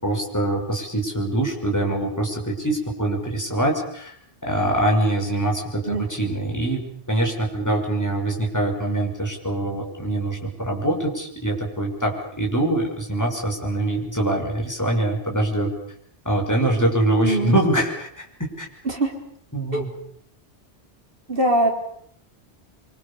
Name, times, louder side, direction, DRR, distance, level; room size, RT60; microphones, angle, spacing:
voice 1, 0.0-4.1 4.4-15.7 16.2-18.7 19.5-19.9, right 1 dB, 15° left, 0 dB, 6.2 m, -24 dB
voice 2, 17.2-17.6 18.8-19.1 19.7-19.9 21.3-21.7, right 1 dB, 60° right, 2 dB, 4.4 m, -22 dB
26.0 x 25.0 x 7.2 m, 0.66 s
omnidirectional pair, 1.1 m